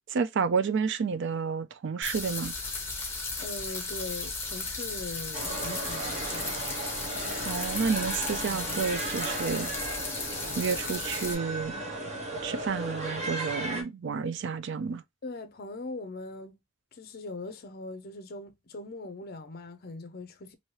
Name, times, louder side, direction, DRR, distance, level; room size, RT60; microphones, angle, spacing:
voice 1, 0.1-2.5 7.4-9.7 10.6-11.7 12.4-15.0, right 5 dB, 55° right, 0.3 m, -30 dB
sound 1, 2.0-11.3, left 3 dB, 10° left, 0.8 m, -35 dB
voice 2, 3.4-6.8 15.2-16.6 16.9-20.5, left 2 dB, 45° left, 0.5 m, -41 dB
sound 2, 5.3-13.8, right 2 dB, 30° right, 0.9 m, -36 dB
2.9 x 2.7 x 3.0 m
head